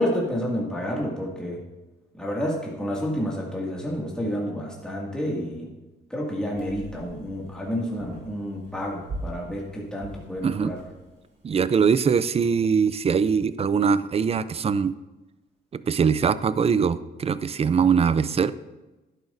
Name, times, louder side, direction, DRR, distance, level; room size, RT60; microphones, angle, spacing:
voice 1, 0.0-1.6 2.1-5.7 6.1-10.8, equal, 5° left, -4 dB, 2.1 m, -29 dB
sound 1, 6.5-11.5, right 1 dB, 60° right, 3.2 m, -42 dB
voice 2, 11.4-14.9 15.7-18.5, right 6 dB, 30° right, 15 dB, 0.4 m, -22 dB
11.0 x 9.2 x 2.6 m, 1.1 s
cardioid pair, 90°, 20 cm